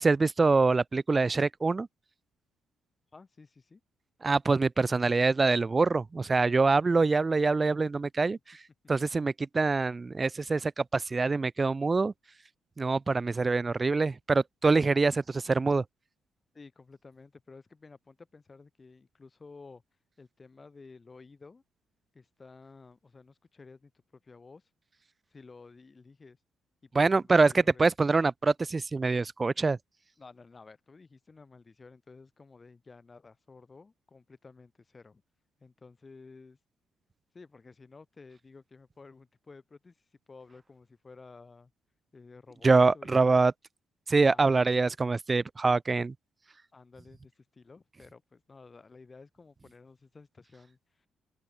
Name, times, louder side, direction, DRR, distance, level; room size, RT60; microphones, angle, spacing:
voice 1, 0.0-1.9 4.2-8.6 8.9-12.1 12.8-15.8 26.9-29.8 42.6-43.5 44.1-46.1, right 3 dB, 25° right, 0.6 m, -25 dB
voice 2, 3.1-3.8 16.5-19.8 20.2-21.6 22.1-23.9 24.2-24.7 25.3-26.4 26.8-27.9 30.2-35.2 35.6-36.6 37.3-41.7 42.1-42.7 42.9-43.4 46.7-51.1, left 4 dB, 30° left, 6.0 m, -53 dB
open air
cardioid pair, 90°, 0 cm